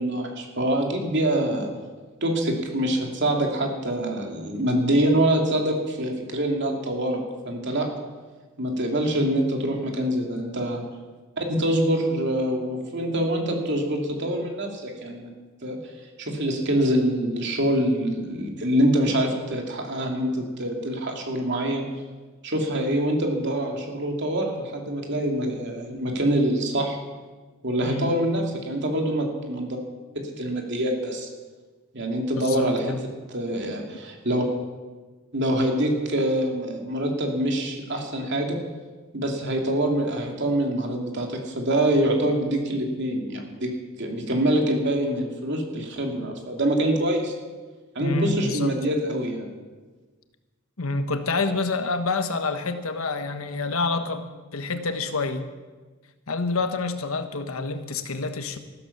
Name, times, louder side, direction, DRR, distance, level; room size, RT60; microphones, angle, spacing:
voice 1, 0.0-1.7 2.2-7.9 8.6-10.8 11.4-15.3 15.6-15.8 16.2-21.9 22.4-27.0 27.6-29.8 30.1-31.3 31.9-32.9 33.3-34.4 35.3-38.6 39.1-43.7 44.0-47.3 47.9-49.5, right 1 dB, 55° right, 2 dB, 2.8 m, -25 dB
voice 2, 27.8-28.1 32.4-33.0 48.0-48.7 50.8-55.5 56.3-58.6, left 3 dB, 90° left, 8 dB, 1.3 m, -28 dB
14.5 x 13.0 x 6.7 m, 1.3 s
head